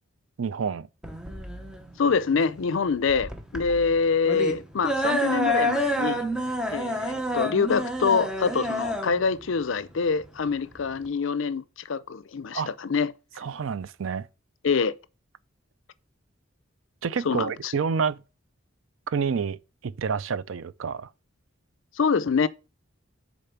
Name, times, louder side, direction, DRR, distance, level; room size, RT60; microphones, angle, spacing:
voice 1, 0.4-0.9 12.5-12.7 13.4-14.3 17.0-18.2 19.1-19.6 19.8-21.1, right 6 dB, 75° right, 0.5 m, -28 dB
sound 1, 1.0-11.1, equal, 5° right, 0.9 m, -29 dB
voice 2, 2.0-6.3 6.7-13.1 14.6-14.9 17.2-17.7 22.0-22.5, left 5 dB, 70° left, 0.5 m, -25 dB
6.7 x 4.2 x 5.8 m
head